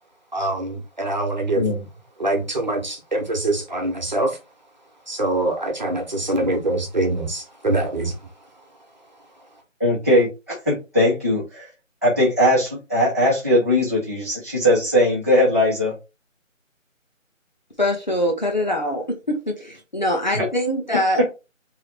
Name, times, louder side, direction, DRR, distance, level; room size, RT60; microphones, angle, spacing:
voice 1, 0.3-1.7 2.2-4.4 5.1-8.2, right 2 dB, 35° right, 1.2 m, -24 dB
voice 2, 9.8-11.7 12.0-15.9 20.3-20.4, left 1 dB, 10° left, 1.0 m, -19 dB
voice 3, 17.8-21.2, left 1 dB, 35° left, 0.8 m, -23 dB
3.7 x 3.3 x 4.3 m
figure-of-eight pair, 170°, 40 cm